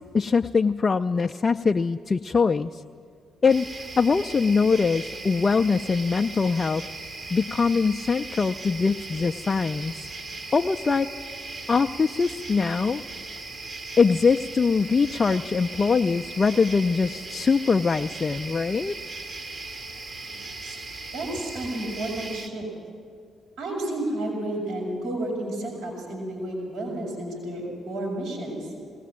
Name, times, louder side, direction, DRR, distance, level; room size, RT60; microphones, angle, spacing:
voice 1, 0.1-2.8 3.4-3.7 4.0-6.8 7.3-10.1 10.5-11.1 11.7-13.0 14.0-19.0, left 5 dB, 35° left, 5 dB, 0.5 m, -22 dB
sound 1, 3.5-22.5, right 3 dB, 45° right, 1.8 m, -38 dB
voice 2, 20.2-20.8 21.1-22.7 23.6-28.7, right 1 dB, 75° right, -5 dB, 5.5 m, -31 dB
20.5 x 18.5 x 7.5 m, 2.2 s
hypercardioid pair, 40°, 0 cm